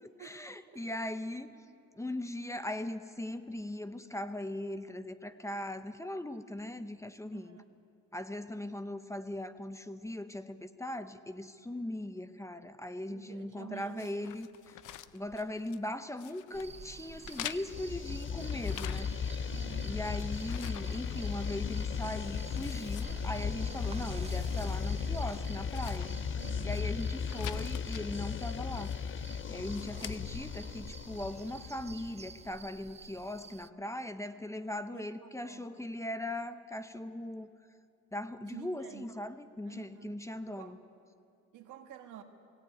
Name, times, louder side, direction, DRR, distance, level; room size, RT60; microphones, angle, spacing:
voice 1, 0.0-1.5 1.9-7.6 8.1-14.8 15.1-19.4 19.8-26.1 26.6-29.0 29.5-37.5 38.1-40.8, left 1 dB, 10° left, 10 dB, 0.9 m, -39 dB
voice 2, 7.3-7.6 13.1-14.1 19.5-19.9 26.3-26.9 34.9-35.7 38.4-39.1 39.6-40.2 40.5-40.8 41.5-42.2, right 10 dB, 85° right, 5 dB, 1.8 m, -50 dB
sound 1, 14.0-15.9 16.2-16.7 17.2-19.4 19.7-21.6 22.0-22.1 22.5-23.6 24.0-24.8 25.1-25.2 25.6-26.8 27.2-28.0 28.8-29.2 29.6-30.2, left 13 dB, 80° left, 0.7 m, -47 dB
sound 2, 16.5-33.7, right 5 dB, 20° right, 0.4 m, -49 dB
sound 3, 17.7-32.5, left 6 dB, 40° left, 0.6 m, -36 dB
18.5 x 17.5 x 9.3 m, 2.5 s
cardioid pair, 90°, 30 cm